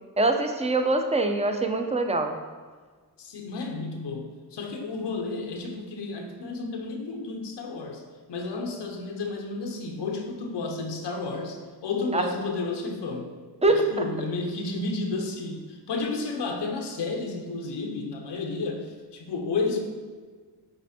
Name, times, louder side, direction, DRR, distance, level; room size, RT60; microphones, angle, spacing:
voice 1, 0.2-2.4 12.1-12.3 13.6-14.1, right 2 dB, 15° right, 5 dB, 0.7 m, -24 dB
voice 2, 3.2-8.0 8.3-13.3 13.7-19.8, left 3 dB, 85° left, 3 dB, 0.9 m, -32 dB
8.8 x 3.4 x 4.3 m, 1.5 s
cardioid pair, 85°, 41 cm